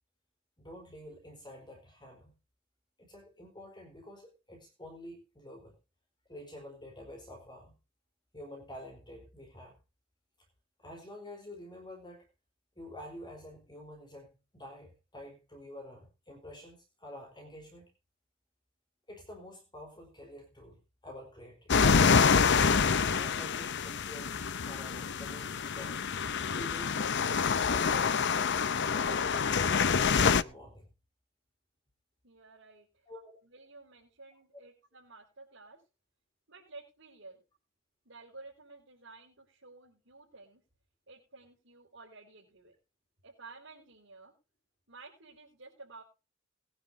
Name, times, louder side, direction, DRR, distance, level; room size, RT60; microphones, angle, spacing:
voice 1, 0.6-2.4 3.0-5.8 6.3-7.8 8.3-9.8 10.8-12.3 12.8-17.9 19.1-21.9 22.9-26.0 26.5-28.6 28.9-30.9 33.1-33.4, left 1 dB, 20° left, 3 dB, 4.0 m, -48 dB
sound 1, 21.7-30.4, left 5 dB, 60° left, 0.8 m, -27 dB
voice 2, 32.2-33.1 33.4-35.8 36.5-37.4 38.1-40.6 41.1-42.8 43.2-44.3 44.9-46.0, right 3 dB, 65° right, -5 dB, 5.2 m, -53 dB
20.5 x 10.5 x 2.8 m, 0.30 s
head